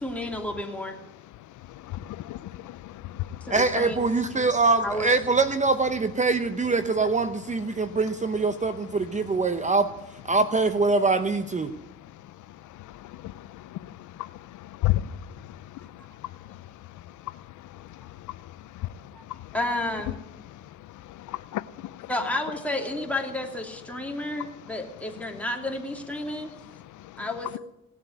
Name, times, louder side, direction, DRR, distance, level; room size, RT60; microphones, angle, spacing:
voice 1, 0.0-1.0 3.4-4.0 4.8-5.1 19.1-19.2 19.5-20.1 22.1-26.5 27.2-27.6, left 1 dB, 5° left, 1 dB, 3.0 m, -31 dB
voice 2, 1.3-3.6 7.7-8.0 9.2-9.7 11.7-15.0 15.6-17.7 18.2-18.3 18.9-19.6 20.8-22.1 23.9-24.8 25.1-25.4 26.2-27.6, left 15 dB, 75° left, 15 dB, 0.6 m, -36 dB
voice 3, 3.5-9.9 10.2-11.7, right 3 dB, 25° right, 10 dB, 0.9 m, -23 dB
18.0 x 7.8 x 9.3 m, 0.87 s
cardioid pair, 90°, 30 cm